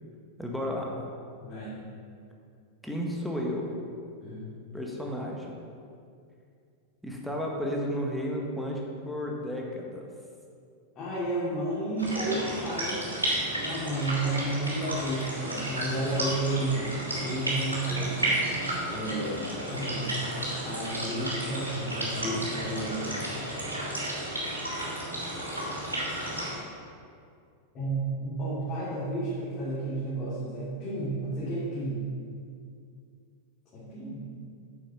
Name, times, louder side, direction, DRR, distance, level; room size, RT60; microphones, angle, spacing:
voice 1, 0.4-0.9 2.8-3.8 4.7-5.5 7.0-10.1, equal, ahead, -2 dB, 1.7 m, -32 dB
voice 2, 1.4-1.7 4.2-4.5 10.9-13.2 13.6-23.5 27.7-32.0 33.7-34.2, right 2 dB, 30° left, -9 dB, 2.8 m, -32 dB
sound 1, 12.0-26.5, right 1 dB, 80° right, 2.8 m, -32 dB
9.0 x 7.3 x 6.0 m, 2.3 s
figure-of-eight pair, 90°, 0 cm